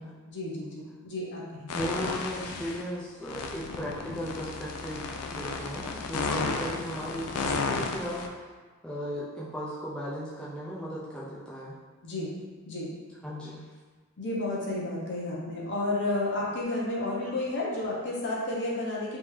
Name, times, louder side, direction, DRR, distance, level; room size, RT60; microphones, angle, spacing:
voice 1, 0.3-1.9 12.0-12.3 12.7-12.9 14.2-19.2, left 2 dB, 50° left, -5 dB, 0.8 m, -32 dB
sound 1, 1.7-2.8 3.2-8.3, left 4 dB, 80° left, 0.4 m, -33 dB
voice 2, 1.7-8.4 8.8-11.8 13.2-13.6, equal, 5° left, -8 dB, 0.5 m, -36 dB
3.4 x 2.7 x 3.1 m, 1.4 s
head